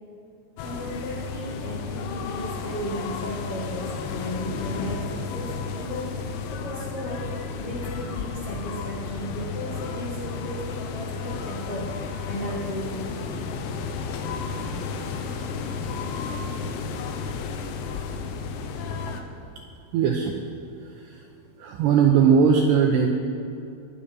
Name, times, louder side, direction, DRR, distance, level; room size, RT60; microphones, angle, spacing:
sound 1, 0.6-19.2, left 5 dB, 90° left, 3.8 m, -32 dB
voice 1, 0.6-6.1 6.5-7.3 7.5-12.0 12.3-13.3, equal, 55° left, -7 dB, 1.7 m, -35 dB
voice 2, 19.9-20.3 20.8-21.2 21.6-23.1, right 6 dB, 80° right, 2 dB, 2.5 m, -20 dB
22.5 x 10.0 x 5.6 m, 2.6 s
omnidirectional pair, 5.9 m